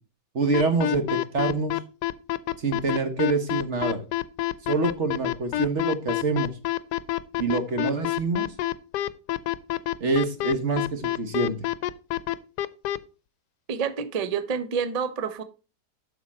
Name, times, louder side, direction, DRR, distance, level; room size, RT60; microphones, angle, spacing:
voice 1, 0.3-1.7 2.6-4.0 4.7-6.5 7.4-8.5 10.0-11.5, right 3 dB, 45° right, 6 dB, 1.3 m, -26 dB
sound 1, 0.5-13.0, left 14 dB, 80° left, 1.1 m, -27 dB
voice 2, 13.7-15.4, right 6 dB, 85° right, 12 dB, 0.3 m, -28 dB
8.1 x 6.3 x 4.2 m, 0.33 s
omnidirectional pair, 1.8 m